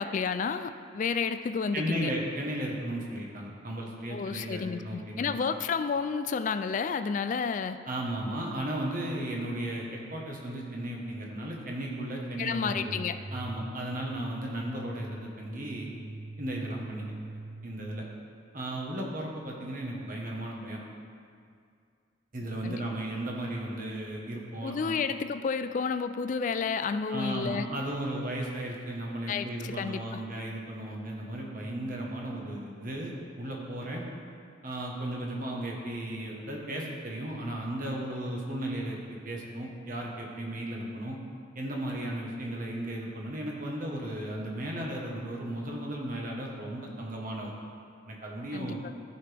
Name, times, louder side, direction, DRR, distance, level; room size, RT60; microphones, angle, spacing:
voice 1, 0.0-2.1 4.1-7.8 12.4-13.2 22.6-22.8 24.6-27.7 29.3-30.0 48.5-48.8, left 5 dB, 40° left, 11 dB, 0.3 m, -31 dB
voice 2, 1.7-5.4 7.9-13.0 13.3-15.9 16.4-17.0 17.6-18.0 18.5-20.8 22.3-25.0 27.1-34.0 34.6-39.0 39.2-41.2 41.5-47.5 48.0-48.8, right 1 dB, 45° right, -1 dB, 1.2 m, -35 dB
sound 1, 12.6-18.3, right 1 dB, 80° right, 0.8 m, -44 dB
14.0 x 4.8 x 3.4 m, 2.3 s
head